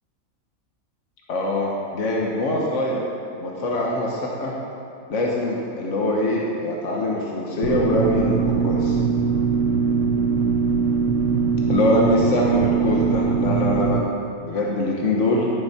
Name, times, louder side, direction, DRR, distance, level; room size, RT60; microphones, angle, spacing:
voice 1, 1.3-3.0 3.4-4.5 5.1-9.0 11.7-14.0 14.4-15.5, left 1 dB, 65° left, -2 dB, 1.5 m, -23 dB
sound 1, 7.6-14.0, right 5 dB, 70° right, 0.9 m, -21 dB
13.0 x 10.5 x 4.3 m, 2.6 s
omnidirectional pair, 1.4 m